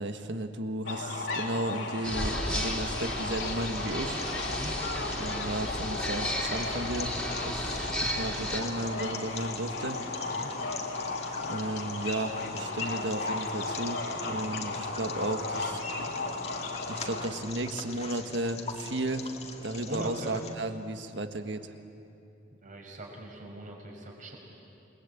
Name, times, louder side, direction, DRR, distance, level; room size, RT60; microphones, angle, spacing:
voice 1, 0.0-4.2 5.2-7.1 7.4-10.0 11.5-15.8 16.9-19.3 19.6-21.7, right 1 dB, 70° right, 7 dB, 1.6 m, -34 dB
sound 1, 0.9-17.3, left 3 dB, 75° left, 3.0 m, -35 dB
sound 2, 2.0-8.6, equal, 5° left, 3.7 m, -34 dB
sound 3, 3.1-20.5, left 4 dB, 35° left, 2.1 m, -43 dB
voice 2, 14.2-14.6 19.9-20.4 22.6-24.4, right 1 dB, 45° right, 0 dB, 5.6 m, -42 dB
29.0 x 21.0 x 8.6 m, 2.7 s
head